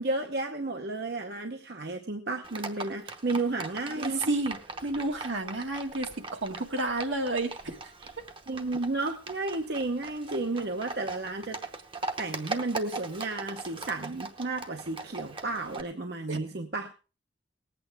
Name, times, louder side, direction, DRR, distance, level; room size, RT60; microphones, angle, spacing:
voice 1, 0.0-4.3 8.5-11.6 12.2-16.9, right 2 dB, 60° right, 5 dB, 0.9 m, -32 dB
Livestock farm animals working animals, 2.4-15.8, right 3 dB, 25° right, 0.9 m, -40 dB
voice 2, 4.0-7.7 16.3-16.4, right 2 dB, 80° right, 3 dB, 1.8 m, -31 dB
19.0 x 8.7 x 3.4 m, 0.33 s
head